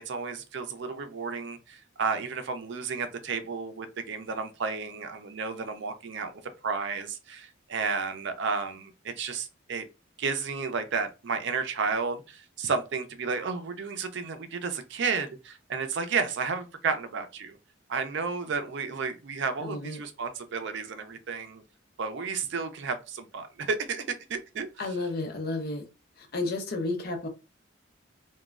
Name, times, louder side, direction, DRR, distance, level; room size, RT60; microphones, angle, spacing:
voice 1, 0.0-6.3 6.6-9.9 10.2-17.6 17.9-21.6 22.0-24.7, right 5 dB, 65° right, 0.4 m, -32 dB
voice 2, 19.6-20.0 24.8-25.8 26.2-27.3, left 2 dB, 50° left, 0.6 m, -32 dB
3.0 x 2.2 x 2.4 m
head